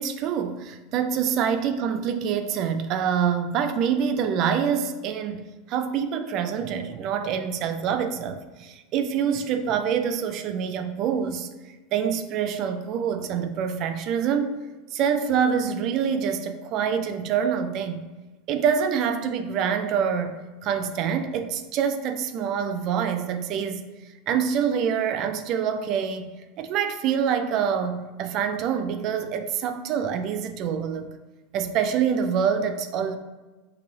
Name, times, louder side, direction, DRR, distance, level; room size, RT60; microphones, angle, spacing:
voice 1, 0.0-11.5 11.9-14.5 14.9-18.0 18.5-23.8 24.3-31.1 31.5-33.2, right 7 dB, 50° right, 8 dB, 0.3 m, -26 dB
3.1 x 2.6 x 4.0 m, 1.2 s
supercardioid pair, 125°, 0 cm